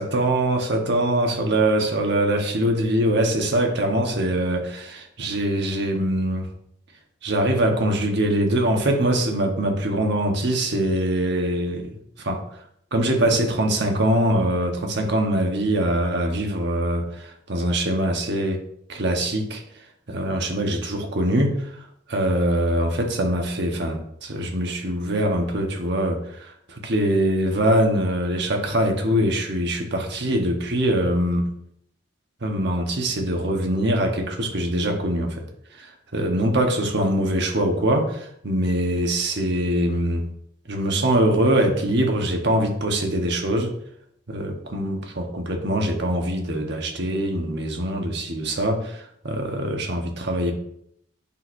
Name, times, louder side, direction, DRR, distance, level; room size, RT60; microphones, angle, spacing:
voice 1, 0.0-6.5 7.2-12.4 12.9-18.6 18.9-19.6 20.1-31.5 32.4-35.4 35.7-40.3 40.7-43.7 44.3-50.5, right 1 dB, 65° right, 3 dB, 1.2 m, -23 dB
8.9 x 6.2 x 2.6 m, 0.71 s
head